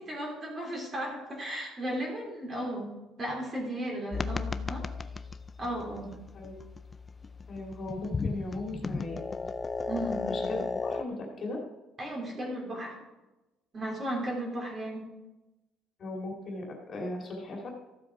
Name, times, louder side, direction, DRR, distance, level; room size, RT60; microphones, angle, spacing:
voice 1, 0.0-2.9 3.2-4.9 5.6-6.1 9.9-10.2 12.0-13.0 13.7-15.1, right 1 dB, 25° right, -1 dB, 3.3 m, -35 dB
sound 1, 4.1-11.0, left 4 dB, 20° left, 0.4 m, -35 dB
voice 2, 7.5-9.2 10.3-11.6 16.0-17.6, left 2 dB, 35° left, -1 dB, 2.6 m, -38 dB
14.0 x 7.8 x 4.8 m, 1.0 s
cardioid pair, 170°, 0 cm